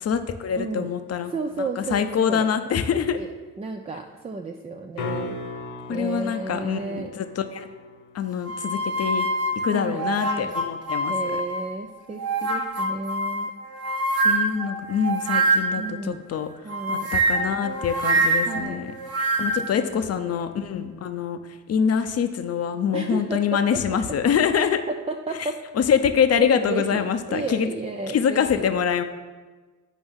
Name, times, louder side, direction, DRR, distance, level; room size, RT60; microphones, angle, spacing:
voice 1, 0.0-1.3 1.8-3.2 5.9-7.7 8.1-9.3 9.6-11.4 14.2-16.5 16.9-18.9 19.4-21.4 21.7-24.8 25.4-25.5 25.7-27.7 28.1-29.0, left 7 dB, 35° left, 9 dB, 0.7 m, -25 dB
voice 2, 0.6-0.9 1.3-2.5 3.1-3.3 3.6-5.4 5.9-7.1 9.7-10.5 11.1-13.5 15.8-16.2 16.6-17.1 18.5-18.8 19.8-20.4 22.9-23.8 24.1-24.2 24.5-25.6 26.3-28.7, right 3 dB, 15° right, 3 dB, 0.4 m, -32 dB
sound 1, 4.9-11.0 15.7-15.8, left 3 dB, 65° left, 1.2 m, -39 dB
sound 2, 8.5-11.7 12.2-15.9 16.7-19.7, right 2 dB, 35° right, 1.1 m, -25 dB
9.1 x 5.0 x 3.7 m, 1.3 s
figure-of-eight pair, 45°, 45 cm